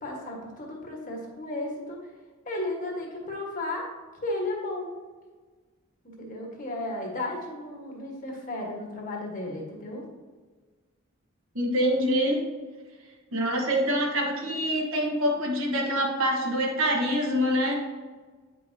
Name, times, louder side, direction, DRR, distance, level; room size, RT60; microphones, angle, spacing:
voice 1, 0.0-2.1 2.4-3.9 4.2-4.9 6.0-10.0, left 2 dB, 40° left, -1 dB, 1.3 m, -34 dB
voice 2, 11.5-12.4 13.3-17.8, equal, 65° right, 0 dB, 1.3 m, -25 dB
8.9 x 5.4 x 2.7 m, 1.4 s
head